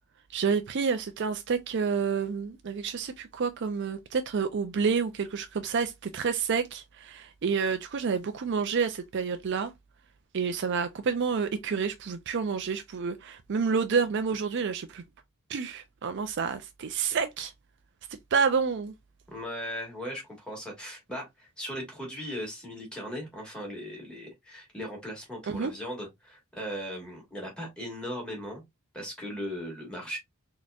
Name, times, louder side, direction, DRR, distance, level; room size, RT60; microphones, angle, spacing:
voice 1, 0.3-9.7 10.3-15.0 15.5-17.5 18.3-18.9 25.5-25.7, right 5 dB, 50° right, 0.4 m, -29 dB
voice 2, 19.3-28.6 28.9-30.2, equal, 5° left, 1.8 m, -38 dB
4.1 x 3.0 x 2.4 m
head